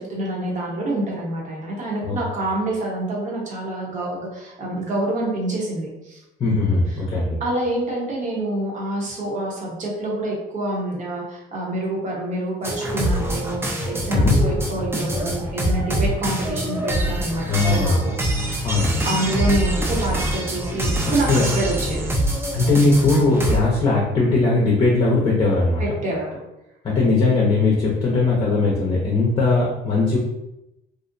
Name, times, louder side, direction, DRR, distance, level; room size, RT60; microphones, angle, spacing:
voice 1, 0.0-6.2 7.4-18.6 19.0-22.1 25.8-26.4, right 1 dB, 45° right, -3 dB, 0.8 m, -27 dB
voice 2, 6.4-7.4 14.1-14.4 17.5-18.0 18.6-19.0 21.3-21.5 22.5-25.8 26.8-30.2, left 3 dB, 35° left, -4 dB, 0.6 m, -19 dB
sound 1, 12.6-23.7, right 1 dB, 15° right, 0.4 m, -24 dB
2.5 x 2.0 x 2.5 m, 0.90 s
cardioid pair, 110°, 17 cm